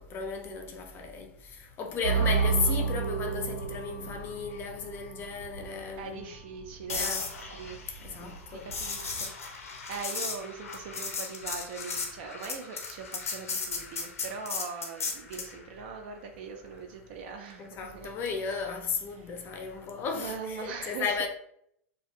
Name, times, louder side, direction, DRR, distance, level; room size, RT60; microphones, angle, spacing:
voice 1, 0.0-6.3 7.0-7.3 8.0-8.7 17.6-21.3, left 5 dB, 30° left, 0.5 m, -35 dB
sound 1, 2.0-9.2, right 5 dB, 90° right, 0.7 m, -32 dB
voice 2, 6.0-7.1 7.4-7.8 8.5-18.5 19.1-19.4 20.1-21.3, right 5 dB, 50° right, 0.4 m, -41 dB
sound 2, 6.9-15.6 19.7-20.0, left 4 dB, 75° left, 0.6 m, -36 dB
2.4 x 2.3 x 2.7 m
figure-of-eight pair, 100°, 8 cm